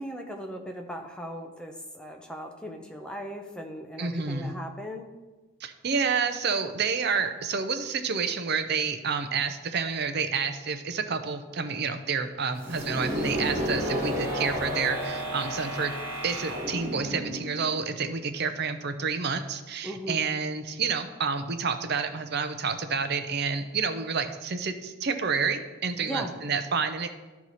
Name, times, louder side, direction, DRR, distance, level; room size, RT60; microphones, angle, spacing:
voice 1, 0.0-5.1 19.8-20.2 26.0-26.3, equal, 5° left, 2 dB, 0.8 m, -38 dB
voice 2, 4.0-4.5 5.6-15.9 16.2-27.1, right 5 dB, 55° right, 8 dB, 0.6 m, -29 dB
sound 1, 12.6-18.3, equal, 15° right, 2.6 m, -32 dB
13.0 x 4.7 x 4.1 m, 1.2 s
head